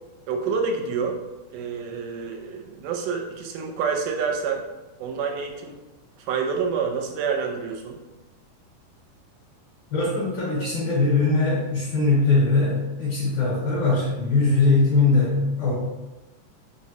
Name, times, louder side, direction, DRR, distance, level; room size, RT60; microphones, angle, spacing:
voice 1, 0.3-1.2 1.5-4.6 5.0-5.8 6.2-8.0, right 5 dB, 85° right, 2 dB, 2.1 m, -28 dB
voice 2, 9.9-15.7, left 3 dB, 70° left, -8 dB, 2.4 m, -21 dB
5.0 x 2.1 x 2.7 m, 1.0 s
omnidirectional pair, 3.7 m